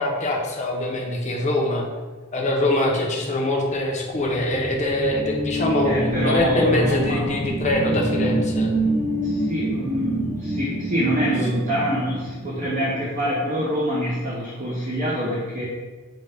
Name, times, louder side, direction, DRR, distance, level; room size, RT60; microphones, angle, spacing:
voice 1, 0.0-1.9 2.3-8.7, left 1 dB, 35° left, 0 dB, 0.6 m, -23 dB
sound 1, 4.1-13.2, right 1 dB, 55° right, 1.2 m, -27 dB
voice 2, 5.8-7.4 9.2-15.6, equal, 40° right, -5 dB, 0.6 m, -25 dB
5.1 x 2.2 x 3.3 m, 1.3 s
head